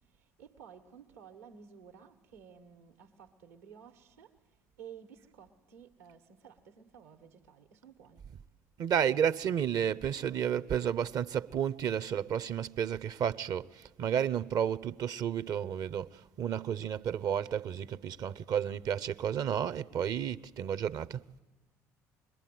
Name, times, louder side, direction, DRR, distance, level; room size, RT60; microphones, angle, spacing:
voice 1, 0.4-4.3 4.8-8.2, right 7 dB, 80° right, 1.6 m, -53 dB
voice 2, 8.8-21.2, right 8 dB, 50° right, 0.8 m, -32 dB
26.0 x 22.0 x 9.2 m
hypercardioid pair, 60°, 8 cm